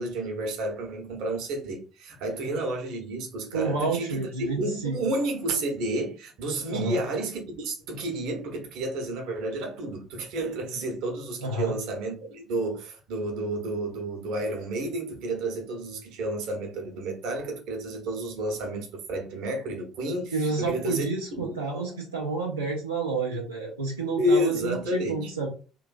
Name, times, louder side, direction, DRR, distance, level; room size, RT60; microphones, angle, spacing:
voice 1, 0.0-21.6 24.2-25.3, right 1 dB, 60° right, 0.8 m, -31 dB
voice 2, 3.5-5.0 6.7-7.0 11.4-11.7 20.3-25.5, right 3 dB, 85° right, 0.4 m, -29 dB
3.0 x 2.5 x 2.3 m
figure-of-eight pair, 50°, 0 cm